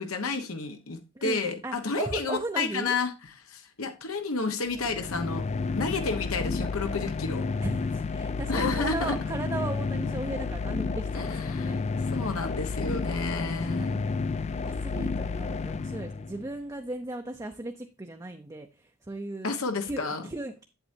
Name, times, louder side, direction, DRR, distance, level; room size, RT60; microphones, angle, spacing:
voice 1, 0.0-3.1 3.4-5.5 5.7-7.4 8.5-9.1 11.1-11.8 12.1-14.1 19.4-20.2, left 3 dB, 85° left, 1.2 m, -31 dB
voice 2, 1.2-2.9 7.6-11.8 13.5-14.2 14.6-19.5 19.8-20.6, right 2 dB, 15° right, 0.6 m, -37 dB
sound 1, 4.7-16.5, left 4 dB, 30° left, 0.4 m, -31 dB
8.0 x 7.9 x 2.7 m
head